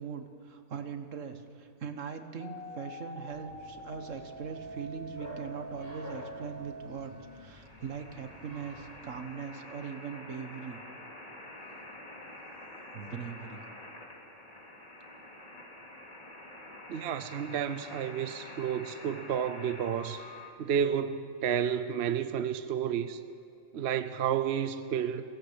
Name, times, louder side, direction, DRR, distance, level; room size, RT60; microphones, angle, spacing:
voice 1, 0.0-10.8 12.9-13.6, right 6 dB, 85° right, 1.7 m, -41 dB
sound 1, 2.4-20.5, left 1 dB, 30° left, 2.5 m, -47 dB
Bark, 3.3-9.2, left 1 dB, 15° right, 6.8 m, -51 dB
voice 2, 16.9-20.2 20.6-23.2 23.7-25.2, right 8 dB, 60° right, 0.9 m, -31 dB
22.5 x 16.5 x 8.0 m
omnidirectional pair, 1.3 m